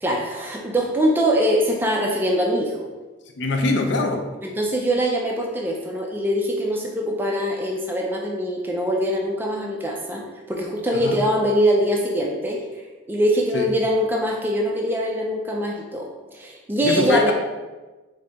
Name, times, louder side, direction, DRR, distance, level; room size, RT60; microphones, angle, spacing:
voice 1, 0.0-2.9 4.4-17.3, equal, 10° right, 0 dB, 0.3 m, -23 dB
voice 2, 3.4-4.3 10.9-11.2 13.5-13.7 16.8-17.3, left 2 dB, 55° left, 4 dB, 0.4 m, -22 dB
3.9 x 2.7 x 3.3 m, 1.2 s
head